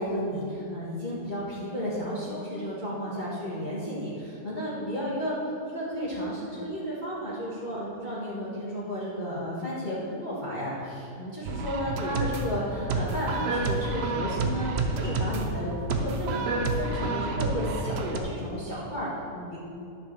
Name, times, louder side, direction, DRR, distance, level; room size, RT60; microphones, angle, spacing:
voice 1, 0.0-5.4 5.6-19.6, equal, 30° left, -9 dB, 1.7 m, -33 dB
sound 1, 11.4-18.2, right 3 dB, 85° right, 1.4 m, -29 dB
10.5 x 5.4 x 6.8 m, 2.7 s
omnidirectional pair, 1.7 m